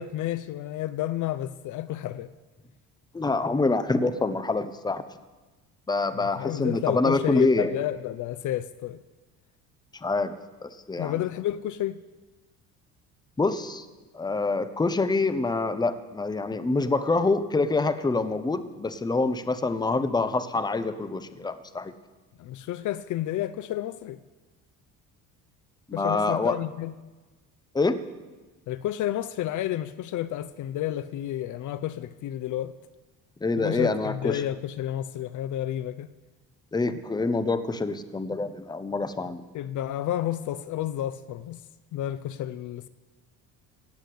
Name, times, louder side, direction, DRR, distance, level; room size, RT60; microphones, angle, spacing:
voice 1, 0.0-2.3 6.1-9.0 11.0-12.0 22.4-24.2 25.9-26.9 28.7-32.7 33.6-36.1 39.5-41.6 41.9-42.9, left 12 dB, 60° left, 0.6 m, -31 dB
voice 2, 3.1-5.0 5.9-7.7 10.0-10.3 10.6-11.1 13.4-13.8 14.1-21.9 25.9-26.6 27.7-28.0 33.4-34.4 36.7-39.4, left 3 dB, 10° left, 0.9 m, -26 dB
16.5 x 8.2 x 8.4 m
cardioid pair, 110°, 35 cm